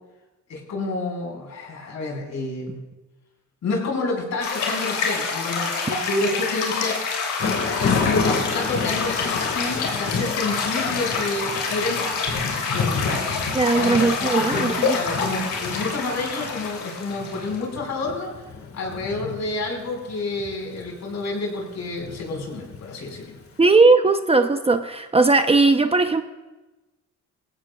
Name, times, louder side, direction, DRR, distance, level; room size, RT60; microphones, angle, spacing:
voice 1, 0.5-2.8 3.6-7.0 7.8-12.0 12.7-13.2 13.7-18.3 18.7-23.4, left 2 dB, 65° left, 0 dB, 5.1 m, -29 dB
sound 1, 4.4-17.6, left 4 dB, 85° left, 3.1 m, -27 dB
Thunder / Rain, 7.4-23.4, left 5 dB, 50° left, 1.8 m, -31 dB
voice 2, 13.5-15.0 23.6-26.2, right 3 dB, 20° right, 7 dB, 0.7 m, -18 dB
20.0 x 16.5 x 2.4 m, 1.1 s
cardioid pair, 90°, 30 cm